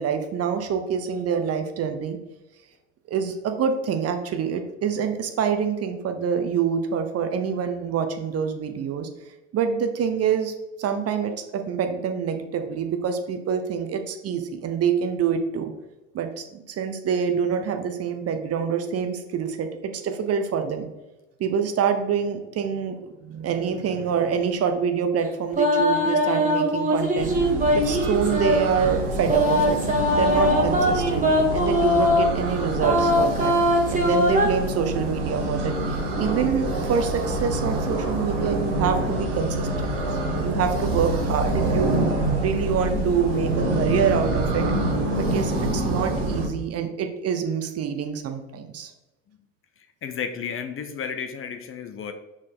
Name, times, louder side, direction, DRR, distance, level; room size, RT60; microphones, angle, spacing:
voice 1, 0.0-2.2 3.1-9.1 9.5-10.5 10.8-15.7 16.1-20.9 21.4-27.3 27.7-29.8 30.1-31.3 31.5-33.5 33.9-42.0 42.4-44.7 45.1-48.9, right 7 dB, 40° right, 7 dB, 0.9 m, -26 dB
sound 1, 25.5-28.6 29.3-32.3 32.8-34.5, equal, 20° right, 1.6 m, -21 dB
sound 2, 27.2-46.5, right 1 dB, 65° right, 1.4 m, -26 dB
voice 2, 50.0-52.1, left 7 dB, 35° left, 7 dB, 0.8 m, -32 dB
6.2 x 4.5 x 3.8 m, 1.0 s
hypercardioid pair, 65°, 37 cm